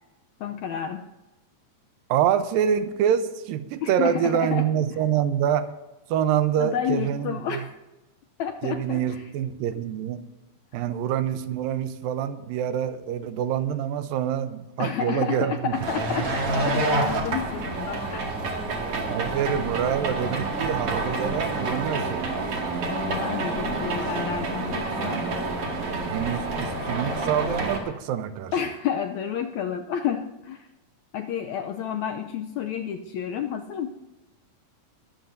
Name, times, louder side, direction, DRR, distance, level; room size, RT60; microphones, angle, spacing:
voice 1, 0.4-1.1 3.8-4.6 6.6-7.7 8.4-9.2 14.8-18.4 22.8-25.3 28.5-30.7 31.1-33.9, left 8 dB, 80° left, 6 dB, 1.6 m, -30 dB
voice 2, 2.1-5.7 6.1-7.6 8.6-10.2 10.7-15.7 19.1-22.3 25.0-25.3 26.1-28.5, right 9 dB, 90° right, 11 dB, 2.5 m, -26 dB
sound 1, 15.7-27.8, right 2 dB, 45° right, 2.9 m, -28 dB
21.0 x 14.5 x 2.7 m, 1.1 s
omnidirectional pair, 4.0 m